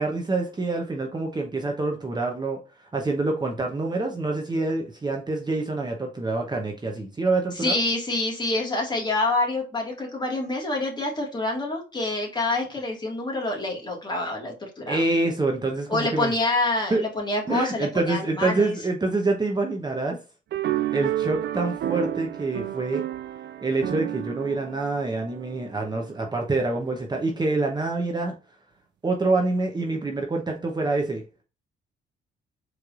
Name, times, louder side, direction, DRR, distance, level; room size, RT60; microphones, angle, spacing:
voice 1, 0.0-2.6 2.9-7.8 14.9-16.3 16.9-17.0 17.5-20.2 20.9-23.0 23.6-28.3 29.0-31.2, right 3 dB, 20° right, 1 dB, 0.8 m, -26 dB
voice 2, 7.6-15.0 15.9-18.7, left 2 dB, 20° left, 0 dB, 1.8 m, -27 dB
sound 1, 20.5-26.1, right 12 dB, 60° right, 0.4 m, -30 dB
4.4 x 3.3 x 2.5 m, 0.33 s
cardioid pair, 90°, 20 cm